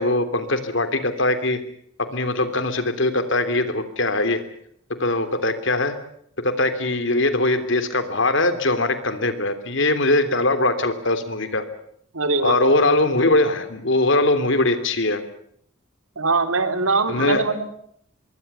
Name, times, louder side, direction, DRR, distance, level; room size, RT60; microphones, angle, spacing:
voice 1, 0.0-1.6 2.1-4.4 5.0-6.0 6.4-11.6 12.4-15.2 17.1-17.4, left 2 dB, 60° left, 11 dB, 3.1 m, -21 dB
voice 2, 12.1-12.6 16.1-17.8, right 3 dB, 85° right, 9 dB, 3.4 m, -22 dB
25.5 x 22.5 x 7.0 m, 0.67 s
head